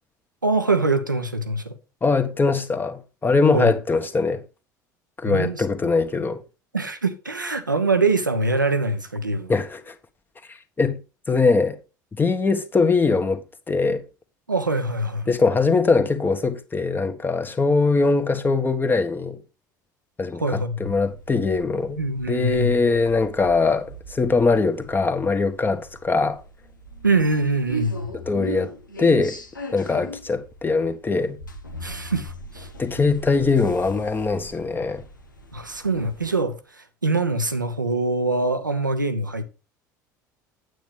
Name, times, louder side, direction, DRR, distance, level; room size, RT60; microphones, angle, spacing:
voice 1, 0.4-1.8 3.5-3.7 5.2-5.9 6.7-9.5 14.5-15.3 20.4-20.9 22.0-23.0 27.0-28.1 31.8-32.7 35.5-39.4, right 2 dB, 90° right, 0.9 m, -24 dB
voice 2, 2.0-4.4 5.2-6.4 9.5-9.9 10.8-11.0 11.3-11.8 12.2-14.0 15.3-19.4 20.2-22.0 22.3-26.4 28.3-28.7 29.0-29.4 29.7-31.4 32.8-35.0, left 4 dB, 20° left, 1.3 m, -21 dB
sound 1, 20.8-36.5, right 1 dB, 85° left, 1.0 m, -40 dB
9.1 x 8.4 x 3.4 m
figure-of-eight pair, 65°, 10 cm